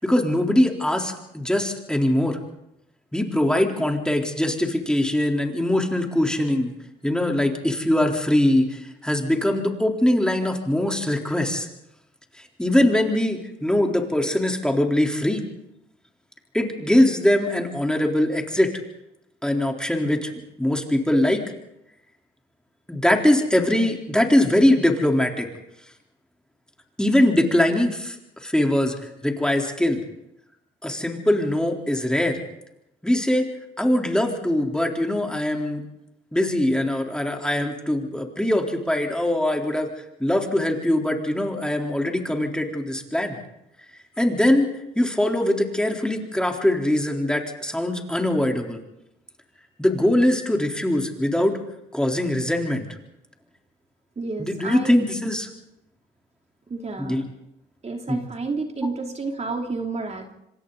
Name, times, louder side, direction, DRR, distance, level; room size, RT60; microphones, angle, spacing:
voice 1, 0.0-2.4 3.1-6.7 7.0-11.7 12.6-15.4 16.5-18.7 19.4-20.3 20.6-21.4 22.9-25.5 27.0-28.2 28.4-29.0 29.2-30.0 30.8-32.4 33.0-33.5 33.8-35.8 36.3-39.9 40.2-43.4 44.2-44.7 45.0-48.8 49.8-51.6 51.9-52.9 54.4-55.5 57.0-57.2 58.1-58.2, left 1 dB, 5° left, 2 dB, 3.8 m, -22 dB
voice 2, 54.2-55.0 56.7-57.2 57.8-60.3, right 3 dB, 35° right, 3 dB, 3.1 m, -30 dB
26.5 x 26.0 x 4.1 m, 0.83 s
cardioid pair, 90°, 20 cm